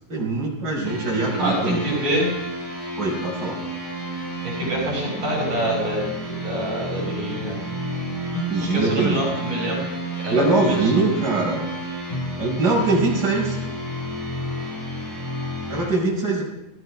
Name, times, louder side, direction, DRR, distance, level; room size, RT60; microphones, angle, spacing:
voice 1, 0.1-1.9 3.0-3.6 8.5-9.2 10.3-11.6 12.4-13.6 15.7-16.4, right 3 dB, 30° right, -4 dB, 5.8 m, -22 dB
sound 1, 0.8-15.9, equal, 70° left, 9.4 m, -31 dB
voice 2, 1.3-2.3 4.4-7.6 8.7-9.8 10.2-11.0, right 1 dB, 45° right, -3 dB, 6.4 m, -26 dB
19.0 x 14.5 x 4.8 m, 0.90 s
omnidirectional pair, 4.0 m